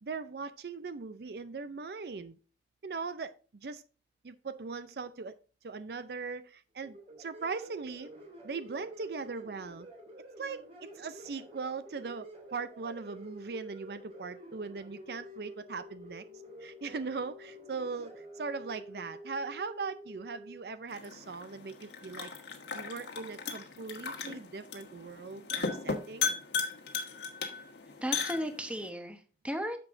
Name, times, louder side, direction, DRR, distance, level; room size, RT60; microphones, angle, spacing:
voice 1, 0.0-2.4 2.8-3.8 4.2-5.4 5.6-8.1 8.4-9.9 10.4-16.2 16.6-22.3 22.7-26.3, right 4 dB, 60° right, 0.5 m, -40 dB
sound 1, 6.8-20.6, equal, 35° right, 2.6 m, -49 dB
sound 2, 20.9-28.9, left 5 dB, 80° left, 1.5 m, -37 dB
voice 2, 28.0-29.8, equal, 5° right, 1.0 m, -35 dB
10.0 x 6.9 x 2.6 m
head